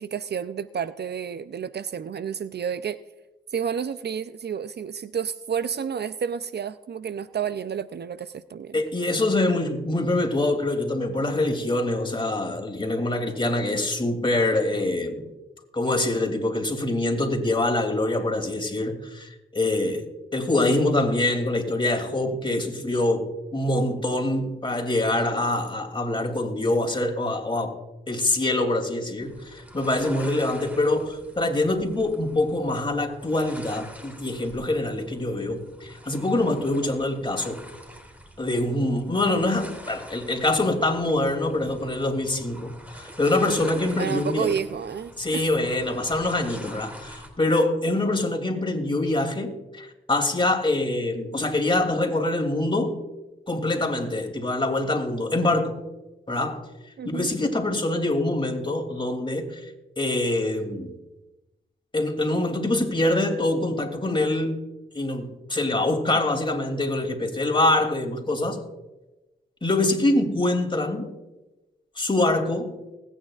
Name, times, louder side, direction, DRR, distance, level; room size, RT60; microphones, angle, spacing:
voice 1, 0.0-3.0 3.5-8.8 44.0-45.4 57.0-57.3, right 7 dB, 55° right, 14 dB, 0.5 m, -30 dB
voice 2, 8.7-15.3 15.7-20.0 20.3-23.2 23.5-27.7 28.1-37.6 38.4-44.5 45.2-53.0 53.5-55.8 56.3-56.7 57.0-60.9 61.9-64.6 64.9-68.6 69.6-71.1 72.0-72.7, left 2 dB, 25° left, 3 dB, 2.7 m, -25 dB
sound 1, 29.2-47.3, equal, 5° right, 3.1 m, -45 dB
20.5 x 9.2 x 2.4 m, 1.0 s
supercardioid pair, 40°, 20 cm